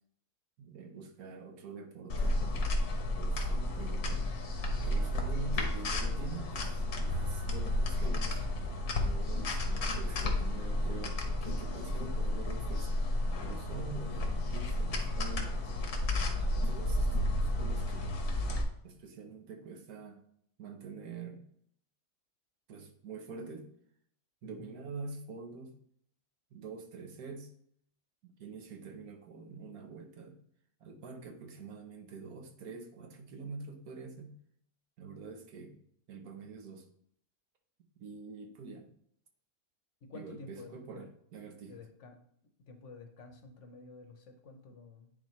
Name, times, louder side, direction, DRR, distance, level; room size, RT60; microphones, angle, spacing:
voice 1, 0.6-2.8 3.2-4.3 4.8-15.8 16.0-18.1 18.8-20.2 20.6-21.4 22.7-23.7 24.4-25.8 26.5-27.5 28.2-30.4 30.8-34.4 35.0-35.8 36.1-36.9 38.0-38.9 40.1-41.8, right 4 dB, 80° right, 4 dB, 1.4 m, -46 dB
sound 1, 2.1-18.6, left 1 dB, 85° left, 1.5 m, -32 dB
voice 2, 16.1-17.1 24.4-24.7 40.0-41.1 41.7-42.2 42.7-45.1, left 4 dB, 60° left, 5 dB, 1.1 m, -51 dB
9.8 x 4.1 x 3.1 m, 0.66 s
omnidirectional pair, 1.6 m